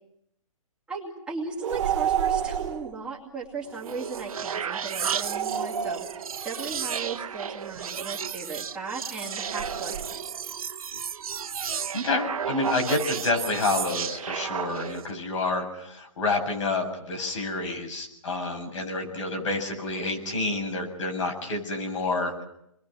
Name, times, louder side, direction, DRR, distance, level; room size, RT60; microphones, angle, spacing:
voice 1, 0.9-10.2, right 4 dB, 5° right, -6 dB, 2.4 m, -37 dB
sound 1, 1.6-2.9 5.2-6.6 9.3-10.5, right 9 dB, 55° right, 1.7 m, -30 dB
sound 2, 3.6-15.1, right 7 dB, 80° right, 1.3 m, -33 dB
voice 2, 11.9-22.4, left 2 dB, 60° left, 3 dB, 7.6 m, -28 dB
29.5 x 21.5 x 6.3 m, 0.79 s
hypercardioid pair, 165°, 18 cm